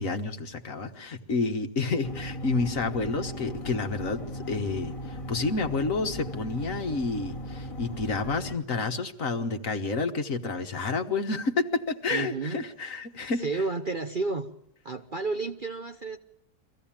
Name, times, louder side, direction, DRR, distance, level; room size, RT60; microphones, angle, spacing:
voice 1, 0.0-13.4, left 3 dB, 55° left, 6 dB, 1.7 m, -29 dB
sound 1, 2.0-8.5, equal, 20° left, 1.6 m, -37 dB
voice 2, 12.1-12.6 13.4-14.5 14.8-16.2, right 3 dB, 35° right, 5 dB, 0.9 m, -31 dB
24.0 x 16.0 x 8.9 m, 0.78 s
omnidirectional pair, 1.8 m